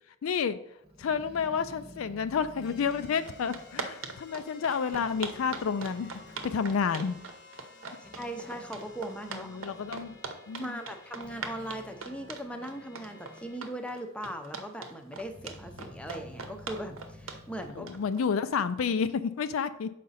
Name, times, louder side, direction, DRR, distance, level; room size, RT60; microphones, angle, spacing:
voice 1, 0.2-0.6 1.0-6.1 6.4-7.2 9.3-10.2 10.5-10.8 17.7-19.9, left 6 dB, 70° left, 12 dB, 0.4 m, -30 dB
Growling, 0.8-4.6 4.9-7.2 7.8-13.6 14.0-14.7 15.1-18.9, left 1 dB, 30° right, 1.0 m, -52 dB
sound 1, 2.6-13.6, left 4 dB, 50° left, 0.9 m, -54 dB
sound 2, 2.9-3.0 3.3-18.8, right 4 dB, 65° right, 0.8 m, -40 dB
voice 2, 8.0-9.5 10.6-17.9, right 1 dB, 5° left, 5 dB, 0.5 m, -39 dB
6.7 x 5.0 x 4.1 m, 0.80 s
head